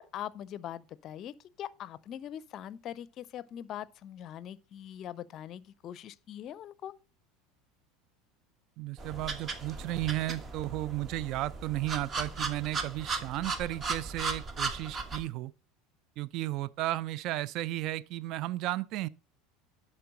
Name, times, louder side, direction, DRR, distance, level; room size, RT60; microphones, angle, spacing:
voice 1, 0.0-6.9, left 10 dB, 45° left, 0.5 m, -42 dB
voice 2, 8.8-15.5 16.2-19.1, right 16 dB, 50° right, 0.3 m, -34 dB
sound 1, 9.0-15.2, right 4 dB, 30° right, 1.2 m, -37 dB
11.0 x 4.3 x 3.9 m
figure-of-eight pair, 75°, 0 cm